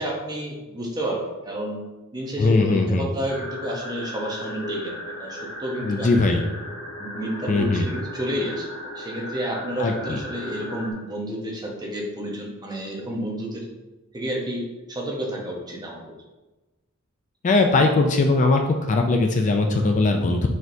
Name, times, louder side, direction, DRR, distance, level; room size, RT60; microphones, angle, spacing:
voice 1, 0.0-1.8 2.1-6.4 7.0-8.7 8.9-13.7 14.1-16.1, equal, 20° right, -1 dB, 0.8 m, -30 dB
voice 2, 2.4-3.1 5.8-6.4 7.5-7.9 9.8-10.2 17.4-20.5, left 3 dB, 35° left, 4 dB, 0.4 m, -20 dB
sound 1, 3.3-10.9, equal, 80° left, 1.1 m, -36 dB
4.6 x 4.2 x 2.7 m, 1.1 s
head